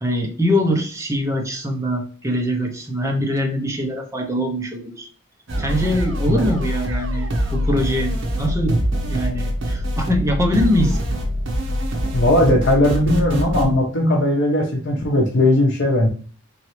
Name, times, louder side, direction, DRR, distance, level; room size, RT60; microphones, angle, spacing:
voice 1, 0.0-5.1 5.6-8.8 9.1-11.0, equal, 15° right, 2 dB, 0.5 m, -23 dB
sound 1, 5.5-13.6, equal, 60° right, 0.9 m, -24 dB
voice 2, 12.1-16.1, left 1 dB, 55° left, 0 dB, 0.8 m, -18 dB
3.9 x 3.1 x 3.1 m, 0.41 s
head